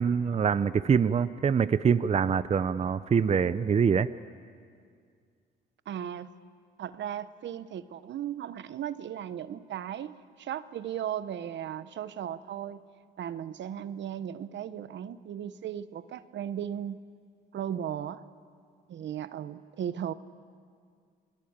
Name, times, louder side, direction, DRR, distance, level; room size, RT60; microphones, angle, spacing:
voice 1, 0.0-4.1, right 6 dB, 35° right, 14 dB, 0.6 m, -24 dB
voice 2, 5.9-6.3 6.8-12.8 13.2-17.0 17.5-18.2 18.9-20.1, right 10 dB, 65° right, 14 dB, 1.0 m, -36 dB
27.5 x 22.0 x 8.8 m, 2.2 s
cardioid pair, 90°, 20 cm